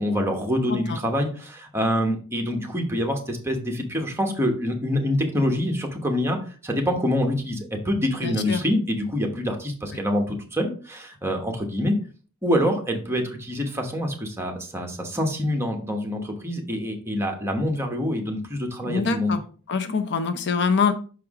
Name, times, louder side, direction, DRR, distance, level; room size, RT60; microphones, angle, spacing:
voice 1, 0.0-6.4 6.6-11.9 12.4-19.4, equal, 10° right, 3 dB, 1.1 m, -26 dB
voice 2, 8.2-8.6 18.8-19.4 19.7-20.9, left 5 dB, 55° left, 9 dB, 0.6 m, -24 dB
6.0 x 4.7 x 3.6 m, 0.40 s
head